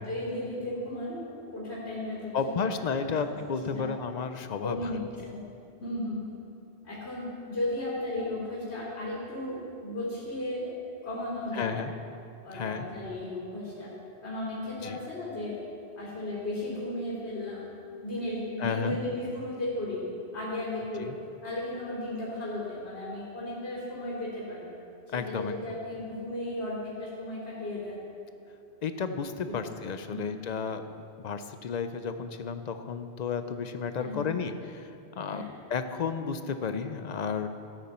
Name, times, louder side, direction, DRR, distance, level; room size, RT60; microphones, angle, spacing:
voice 1, 0.0-2.7 3.0-3.2 3.6-3.9 4.6-5.4 5.8-6.2 6.8-10.8 11.0-11.9 12.4-13.9 14.2-15.6 15.9-17.7 18.0-21.1 21.4-24.7 25.1-28.0 29.4-29.6 30.1-30.3 34.0-34.4 35.3-35.5, left 1 dB, 70° left, -7 dB, 3.4 m, -35 dB
voice 2, 2.3-4.8 11.5-11.9 12.5-12.9 14.8-15.0 18.6-19.0 21.0-21.2 25.1-25.6 28.8-37.5, left 5 dB, 50° left, 9 dB, 0.5 m, -32 dB
13.5 x 9.2 x 4.3 m, 2.5 s
omnidirectional pair, 1.2 m